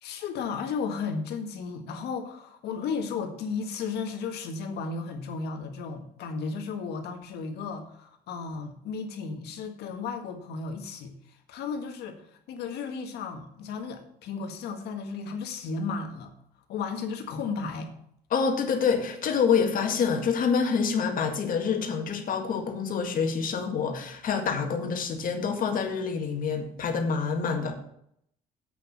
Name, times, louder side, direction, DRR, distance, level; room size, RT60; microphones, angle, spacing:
voice 1, 0.0-16.3 16.7-17.9, left 5 dB, 75° left, 5 dB, 1.8 m, -34 dB
voice 2, 18.3-27.8, left 6 dB, 55° left, 4 dB, 1.9 m, -27 dB
8.2 x 6.4 x 7.2 m, 0.70 s
cardioid pair, 110°, 17 cm